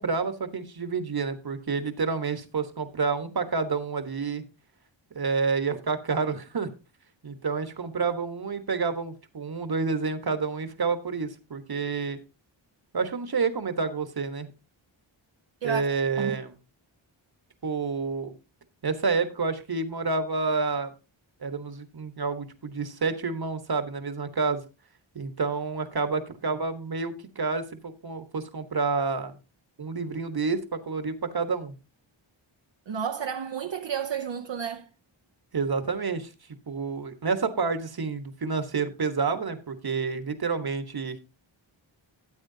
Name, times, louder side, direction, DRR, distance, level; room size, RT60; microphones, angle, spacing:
voice 1, 0.0-4.4 5.1-6.7 7.2-12.2 12.9-14.5 15.6-16.5 17.6-18.3 18.8-20.9 21.4-24.6 25.1-29.3 29.8-31.7 35.5-36.3 36.7-41.2, right 4 dB, 50° right, 1.3 m, -29 dB
voice 2, 32.9-34.9, right 7 dB, 65° right, 0.8 m, -31 dB
13.0 x 8.6 x 2.7 m
wide cardioid pair, 85°, 47 cm